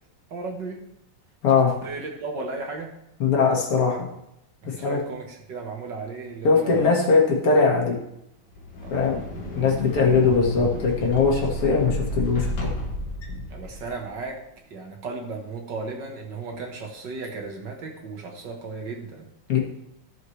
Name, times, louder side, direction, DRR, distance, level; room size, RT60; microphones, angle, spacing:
voice 1, 0.3-0.8 1.5-2.9 4.6-7.0 8.8-9.1 13.5-14.4 14.7-19.3, right 3 dB, 55° right, 1 dB, 1.8 m, -35 dB
voice 2, 3.2-4.1 4.6-5.0 6.4-8.0 8.9-9.2 9.5-12.7 19.5-19.6, left 4 dB, 85° left, -2 dB, 2.7 m, -20 dB
sound 1, 8.5-14.1, left 1 dB, 55° left, 1.8 m, -32 dB
14.0 x 6.5 x 3.2 m, 0.82 s
omnidirectional pair, 2.4 m